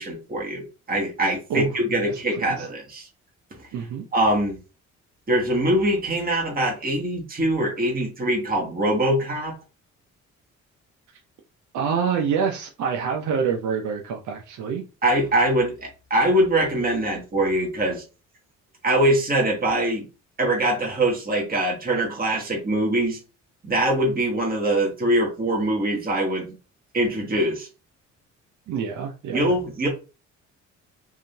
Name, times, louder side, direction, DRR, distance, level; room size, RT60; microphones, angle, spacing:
voice 1, 0.0-3.1 3.6-3.7 4.1-4.6 5.3-9.5 15.0-18.0 18.8-20.1 20.4-23.2 23.6-26.6 26.9-27.7 29.3-29.9, right 1 dB, 30° right, -1 dB, 1.4 m, -23 dB
voice 2, 2.1-2.7 3.7-4.0 11.7-14.8 28.7-29.5, right 6 dB, 75° right, 1 dB, 0.7 m, -27 dB
3.6 x 2.6 x 3.4 m, 0.32 s
cardioid pair, 90°, 30 cm